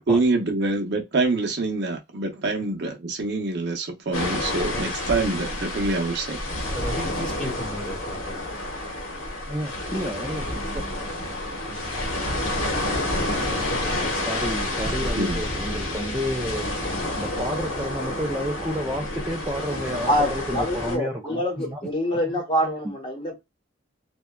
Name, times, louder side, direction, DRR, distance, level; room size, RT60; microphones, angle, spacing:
voice 1, 0.0-6.4 15.1-15.4, right 3 dB, 55° right, 0.6 m, -25 dB
sound 1, 4.1-21.0, left 1 dB, 85° left, 1.1 m, -29 dB
voice 2, 6.7-8.2 10.4-11.3 11.7-12.1 13.5-14.1 14.5-14.6, equal, 5° left, 1.1 m, -36 dB
voice 3, 9.5-10.9 12.0-12.4 14.2-21.8 22.1-22.2 22.8-22.9, equal, 10° right, 0.3 m, -31 dB
voice 4, 20.1-23.4, equal, 25° left, 0.9 m, -25 dB
2.7 x 2.2 x 2.2 m
head